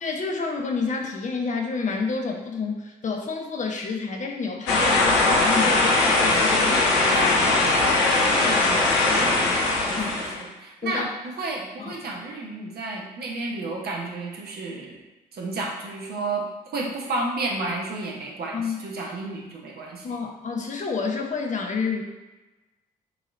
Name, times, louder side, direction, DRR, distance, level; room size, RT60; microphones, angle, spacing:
voice 1, 0.0-7.6 9.1-9.4 9.9-10.1 10.8-11.1 11.8-12.0 16.8-16.9 18.5-18.8 20.0-22.0, left 4 dB, 35° left, 2 dB, 0.8 m, -29 dB
sound 1, 4.7-10.4, left 2 dB, 60° left, 0.9 m, -20 dB
voice 2, 8.2-8.7 9.2-9.4 9.9-15.0 15.3-16.4 16.7-20.1, right 2 dB, 50° right, -1 dB, 1.0 m, -32 dB
6.8 x 3.0 x 2.6 m, 1.1 s
figure-of-eight pair, 40°, 21 cm